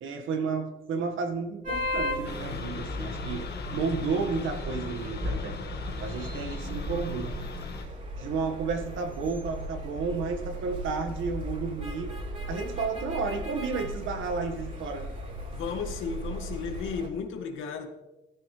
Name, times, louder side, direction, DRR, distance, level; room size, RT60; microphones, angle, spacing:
voice 1, 0.0-5.6 6.0-7.3 7.8-12.2 12.5-15.1, right 4 dB, 80° right, 5 dB, 1.7 m, -32 dB
sound 1, 1.6-17.1, equal, 40° right, 4.2 m, -36 dB
sound 2, 2.2-7.8, left 5 dB, 55° left, 1.8 m, -39 dB
voice 2, 15.5-17.9, left 6 dB, 85° left, 3 dB, 2.1 m, -34 dB
16.0 x 13.0 x 3.3 m, 1.0 s
cardioid pair, 90°, 20 cm